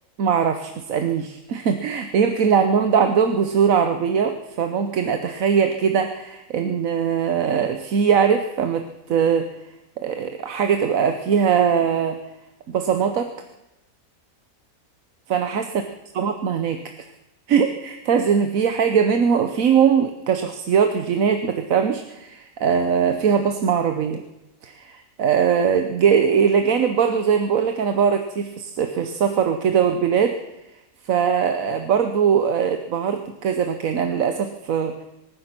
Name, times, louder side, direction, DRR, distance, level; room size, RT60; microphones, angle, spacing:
voice 1, 0.2-9.5 10.0-12.2 12.7-13.3 15.3-15.7 16.1-16.8 17.5-24.2 24.6-24.9 25.2-30.4 31.1-34.9, right 7 dB, 75° right, 7 dB, 1.3 m, -21 dB
24.5 x 9.6 x 6.0 m, 0.94 s
omnidirectional pair, 1.5 m